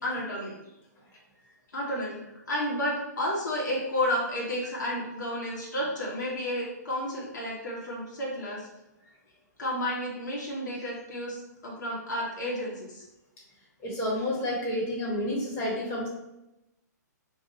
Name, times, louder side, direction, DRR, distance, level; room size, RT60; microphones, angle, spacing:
voice 1, 0.0-0.5 1.7-2.2 2.5-8.7 9.6-13.1, left 1 dB, 75° left, -4 dB, 1.3 m, -31 dB
voice 2, 13.8-16.1, left 1 dB, 25° left, -4 dB, 1.3 m, -30 dB
2.9 x 2.3 x 4.2 m, 0.90 s
hypercardioid pair, 130°, 10 cm